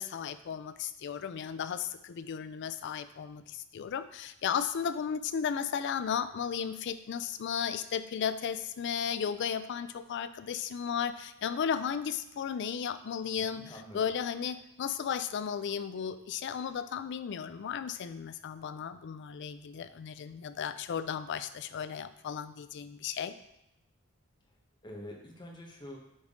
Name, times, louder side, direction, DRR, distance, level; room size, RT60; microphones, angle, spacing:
voice 1, 0.0-23.3, left 7 dB, 55° left, 12 dB, 0.4 m, -35 dB
voice 2, 13.5-14.1 24.8-26.0, left 1 dB, 20° left, 0 dB, 1.1 m, -46 dB
8.0 x 3.6 x 3.7 m, 0.88 s
head